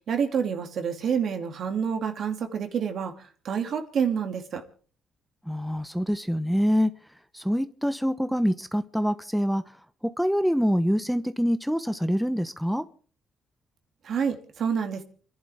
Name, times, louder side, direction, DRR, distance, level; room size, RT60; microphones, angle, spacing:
voice 1, 0.1-4.6 14.0-15.0, right 7 dB, 60° right, 2.7 m, -28 dB
voice 2, 5.5-6.9 7.3-9.6 10.2-12.8, equal, ahead, 0.9 m, -25 dB
29.0 x 11.0 x 3.6 m
cardioid pair, 90°, 0 cm